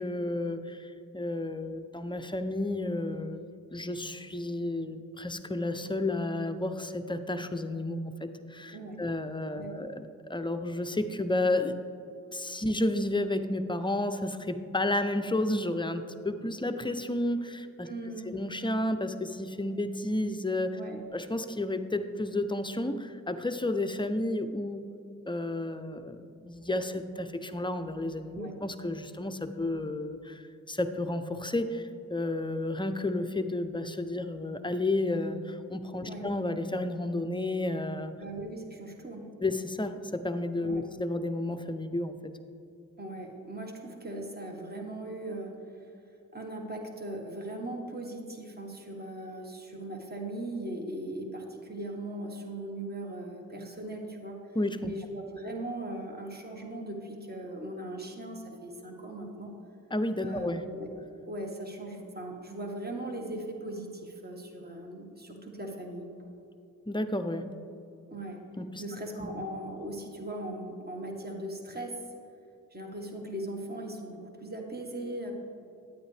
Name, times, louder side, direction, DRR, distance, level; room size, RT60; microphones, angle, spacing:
voice 1, 0.0-10.0 10.3-11.8 12.3-17.9 18.3-20.8 21.1-24.9 25.3-38.1 39.4-42.3 54.5-54.9 59.9-60.7 66.9-67.5 68.6-68.8 69.2-69.3, left 2 dB, 15° left, 8 dB, 0.6 m, -32 dB
voice 2, 8.7-9.0 9.5-9.9 17.9-18.4 20.7-21.1 28.3-28.5 36.1-36.3 38.2-39.3 40.6-40.8 43.0-45.9 46.3-54.4 54.8-59.5 60.2-60.9 61.3-66.0 68.1-68.4 68.8-72.0 72.7-75.3, right 1 dB, 30° right, 1 dB, 1.5 m, -39 dB
9.4 x 8.8 x 3.3 m, 2.6 s
cardioid pair, 50°, 34 cm